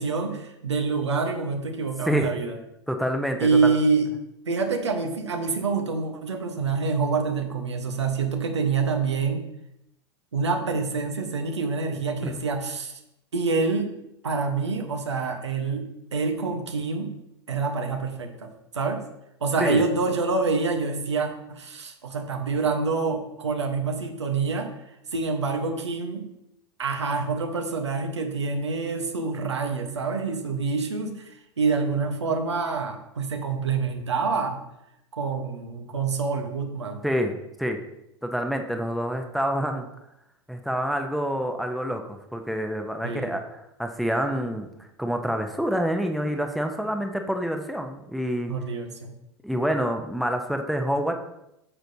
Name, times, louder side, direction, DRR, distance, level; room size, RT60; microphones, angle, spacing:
voice 1, 0.0-2.6 3.4-4.1 4.5-9.4 10.3-12.9 13.3-13.9 14.2-17.1 17.5-18.5 18.7-19.0 19.4-24.7 25.1-26.2 26.8-34.6 35.1-37.0 43.0-43.4 48.5-49.1, right 4 dB, 85° right, 4 dB, 1.2 m, -26 dB
voice 2, 2.9-3.7 12.2-12.3 19.6-19.8 37.0-37.3 37.6-37.8 38.2-39.9 40.5-44.7 45.0-48.5 49.4-51.1, equal, ahead, 4 dB, 0.9 m, -27 dB
9.3 x 6.4 x 2.8 m, 0.84 s
hypercardioid pair, 95°, 14 cm